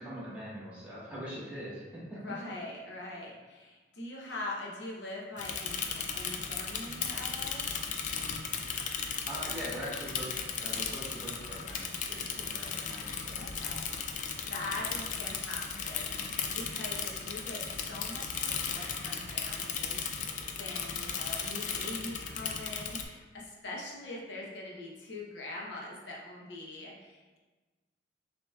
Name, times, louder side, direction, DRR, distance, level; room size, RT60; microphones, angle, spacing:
voice 1, 0.0-2.2 9.3-13.4 14.9-15.0, equal, 10° right, -8 dB, 1.2 m, -42 dB
voice 2, 2.1-7.7 13.4-13.9 14.2-27.4, left 2 dB, 65° left, -3 dB, 0.7 m, -43 dB
Bicycle / Mechanisms, 5.4-23.0, left 6 dB, 45° left, 0.3 m, -36 dB
6.6 x 2.8 x 2.2 m, 1.3 s
head